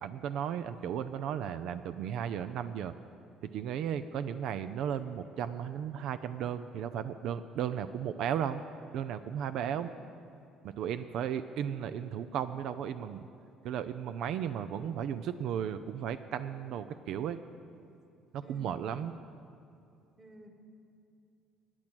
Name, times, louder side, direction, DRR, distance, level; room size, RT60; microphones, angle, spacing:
voice 1, 0.0-2.9 3.4-8.6 8.9-9.9 10.6-13.3 13.6-17.4 17.8-17.9 18.3-19.1, right 9 dB, 70° right, 11 dB, 0.4 m, -35 dB
voice 2, 18.4-18.9 20.2-20.5, right 1 dB, 30° right, 4 dB, 1.8 m, -53 dB
14.5 x 9.0 x 6.2 m, 2.6 s
cardioid pair, 95°, 0 cm